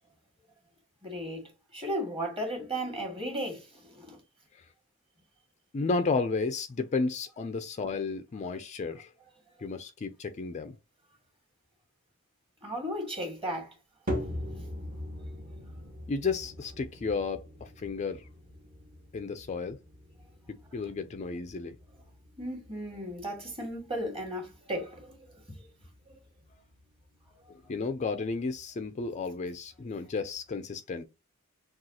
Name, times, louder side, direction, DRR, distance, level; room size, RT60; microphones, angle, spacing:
voice 1, 1.0-4.2 8.5-8.6 12.6-13.7 22.4-25.6 26.1-26.2 27.4-27.5, equal, 25° right, 1.9 m, -36 dB
voice 2, 5.7-9.1 9.6-10.8 16.1-18.3 19.1-19.8 20.7-21.8 27.5-31.0, left 4 dB, 35° left, 0.4 m, -32 dB
sound 1, 14.1-30.5, equal, 40° right, 1.2 m, -43 dB
6.2 x 2.4 x 2.8 m
head